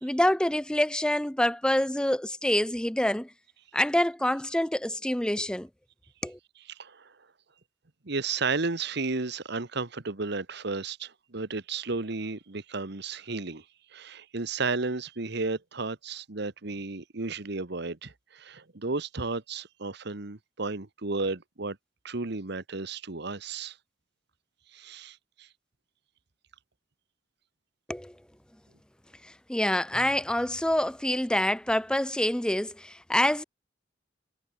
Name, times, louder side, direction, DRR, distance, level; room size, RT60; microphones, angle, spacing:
voice 1, 0.0-3.3 3.7-5.7 6.2-6.4 27.9-28.1 29.2-33.4, left 1 dB, 5° left, 0.6 m, -26 dB
voice 2, 6.7-7.1 8.0-13.6 13.9-21.8 22.0-23.8 24.7-25.5, right 3 dB, 60° right, 1.3 m, -33 dB
head